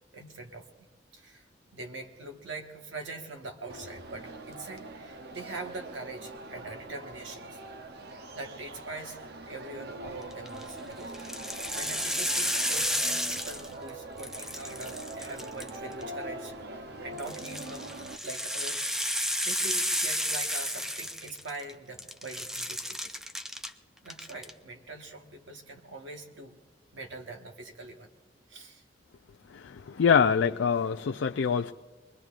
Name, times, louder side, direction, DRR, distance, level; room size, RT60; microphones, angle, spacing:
voice 1, 0.1-0.7 1.1-1.5 1.7-7.6 8.3-11.3 11.7-17.9 18.2-23.2 24.0-26.6 26.9-28.1 28.5-28.8 29.8-30.0, right 2 dB, 75° right, 3 dB, 1.4 m, -43 dB
sound 1, 3.7-18.2, right 2 dB, 55° right, 0.7 m, -43 dB
sound 2, 10.3-10.6 11.1-13.9 14.2-16.0 17.2-21.7 22.0-23.7 24.1-24.5, equal, 5° right, 0.4 m, -32 dB
voice 2, 29.5-31.7, left 6 dB, 75° left, 6 dB, 0.4 m, -25 dB
24.5 x 21.0 x 2.5 m, 1.4 s
head